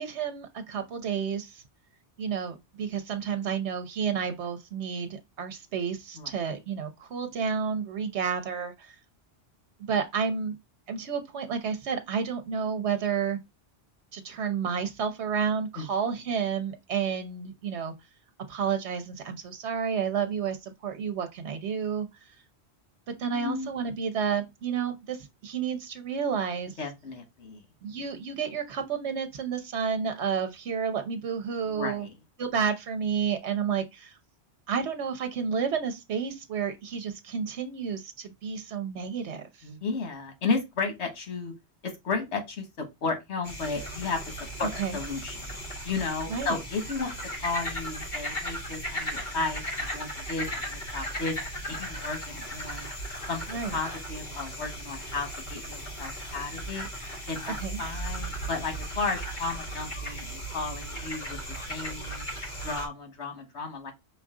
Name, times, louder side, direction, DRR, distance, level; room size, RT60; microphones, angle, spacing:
voice 1, 0.0-1.6 2.2-9.0 9.9-10.6 10.9-13.4 14.1-17.9 18.5-22.1 23.2-26.8 27.8-32.1 32.4-34.2 34.7-39.7 44.8-45.0 46.3-46.6 53.5-53.7 57.6-57.8, right 6 dB, 85° right, 1.1 m, -31 dB
voice 2, 23.3-23.7 26.8-27.6 31.7-32.1 39.6-41.5 41.8-45.5 45.8-47.1 47.4-51.4 51.7-52.9 53.3-53.4 53.7-56.9 57.3-61.4 61.7-62.2 62.6-63.9, left 4 dB, 85° left, 1.5 m, -33 dB
sound 1, 43.4-62.9, equal, 45° left, 1.7 m, -36 dB
5.6 x 2.4 x 3.6 m
omnidirectional pair, 1.1 m